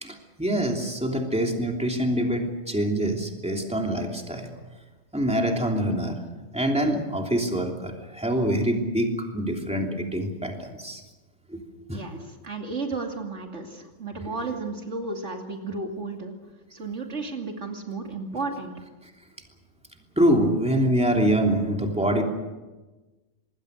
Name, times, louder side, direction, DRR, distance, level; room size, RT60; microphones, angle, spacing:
voice 1, 0.0-4.5 5.1-6.2 6.5-11.0 11.5-11.6 11.9-12.3 20.2-22.2, right 1 dB, 5° right, 1 dB, 3.1 m, -25 dB
voice 2, 11.9-16.3 16.7-18.7, right 3 dB, 65° right, 2 dB, 2.9 m, -33 dB
26.0 x 21.0 x 6.5 m, 1.2 s
omnidirectional pair, 1.3 m